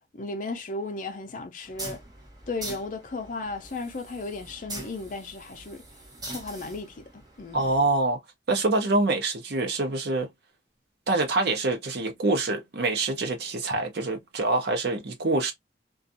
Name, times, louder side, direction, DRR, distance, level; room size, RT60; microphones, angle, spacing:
voice 1, 0.1-2.0 2.5-5.8 6.3-7.0 7.4-7.7, left 3 dB, 50° left, 0.5 m, -35 dB
sound 1, 1.6-8.0, right 1 dB, 25° right, 1.0 m, -42 dB
voice 2, 7.5-8.2 8.5-10.3 11.1-15.5, right 2 dB, 65° right, 0.6 m, -25 dB
2.5 x 2.3 x 2.6 m
head